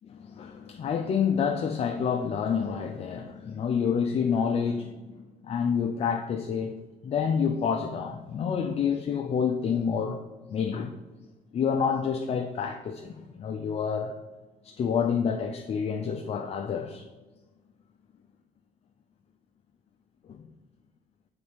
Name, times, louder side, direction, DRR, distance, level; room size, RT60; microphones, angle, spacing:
voice 1, 0.2-6.8 7.0-10.2 10.5-10.9 11.5-14.2 14.6-17.1 20.3-20.5, left 6 dB, 35° left, 4 dB, 0.5 m, -28 dB
7.0 x 4.0 x 5.0 m, 1.2 s
cardioid pair, 110°, 17 cm